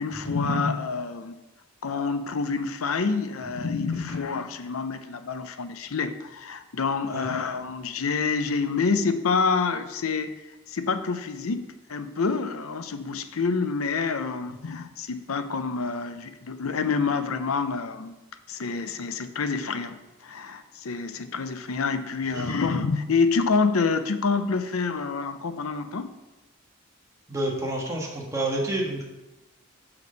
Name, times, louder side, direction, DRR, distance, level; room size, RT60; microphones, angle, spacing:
voice 1, 0.0-1.4 1.8-10.3 10.7-18.1 18.5-26.1, left 4 dB, 85° left, 10 dB, 0.6 m, -27 dB
voice 2, 27.3-29.0, right 1 dB, 15° right, -2 dB, 1.4 m, -29 dB
6.2 x 5.8 x 5.2 m, 1.0 s
head